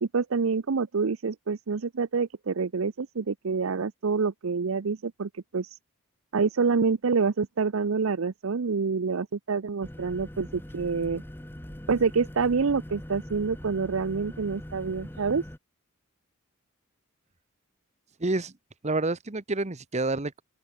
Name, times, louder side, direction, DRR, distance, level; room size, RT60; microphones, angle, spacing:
voice 1, 0.0-5.7 6.3-11.2 11.9-15.4, right 5 dB, 75° right, 0.6 m, -27 dB
sound 1, 9.8-15.6, equal, 10° left, 1.0 m, -42 dB
voice 2, 18.2-18.5 18.8-20.4, right 2 dB, 35° right, 1.2 m, -28 dB
open air
head